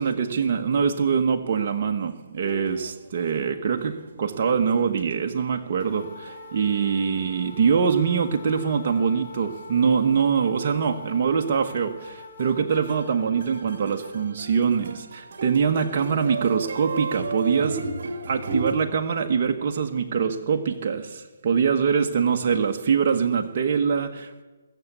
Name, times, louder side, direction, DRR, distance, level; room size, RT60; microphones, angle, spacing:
voice 1, 0.0-17.8 18.3-24.4, right 6 dB, 45° right, 3 dB, 1.2 m, -24 dB
sound 1, 2.4-10.1 10.6-10.7 11.0-11.1 11.3-11.4 11.8-12.1 12.4-18.7, right 3 dB, 60° right, 1.8 m, -36 dB
sound 2, 5.8-14.3, left 4 dB, 50° left, 2.6 m, -44 dB
22.0 x 7.3 x 8.2 m, 1.2 s
hypercardioid pair, 150°, 0 cm